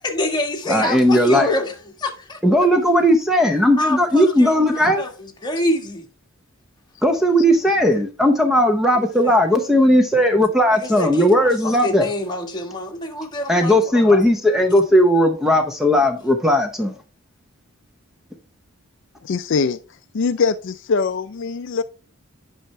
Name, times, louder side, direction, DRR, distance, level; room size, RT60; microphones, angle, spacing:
voice 1, 0.0-2.4 3.8-6.1 8.9-9.3 10.7-14.2, left 1 dB, 20° left, 1.4 m, -26 dB
voice 2, 0.7-1.5 2.4-5.0 7.0-12.1 13.5-16.9, equal, ahead, 0.7 m, -17 dB
voice 3, 19.2-19.8 20.1-21.8, left 5 dB, 60° left, 0.4 m, -22 dB
9.3 x 5.6 x 3.2 m
head